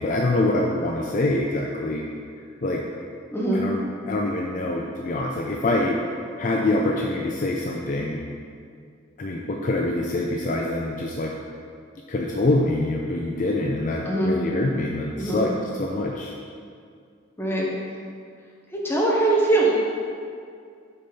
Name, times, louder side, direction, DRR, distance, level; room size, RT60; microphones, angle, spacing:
voice 1, 0.0-2.0 2.6-2.8 3.5-6.0 6.4-8.2 9.2-11.3 12.1-16.3, left 2 dB, 40° left, 0 dB, 0.4 m, -25 dB
voice 2, 3.3-3.6 14.1-14.4 15.2-15.4 17.4-17.7 18.8-19.7, right 2 dB, 10° left, -4 dB, 1.0 m, -21 dB
6.6 x 4.2 x 5.3 m, 2.2 s
head